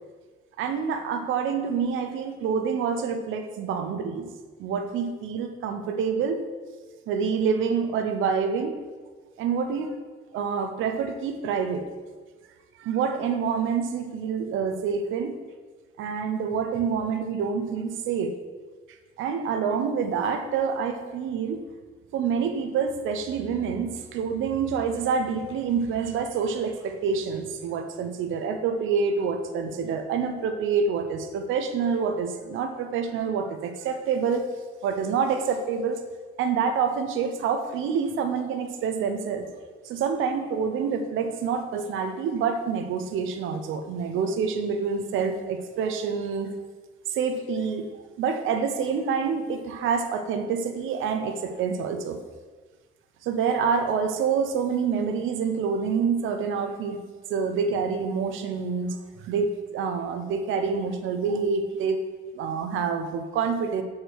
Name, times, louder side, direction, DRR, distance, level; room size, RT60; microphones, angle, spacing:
voice 1, 0.6-4.3 4.6-6.4 7.1-8.7 9.4-9.9 10.3-11.8 12.8-15.4 16.0-18.3 19.2-21.6 22.1-34.5 34.8-36.0 36.4-39.5 39.8-46.5 47.1-47.9 48.2-52.2 53.2-57.0 57.3-62.0 62.3-63.8, right 6 dB, 90° right, 7 dB, 0.8 m, -27 dB
7.3 x 4.7 x 6.4 m, 1.4 s
cardioid pair, 90°, 20 cm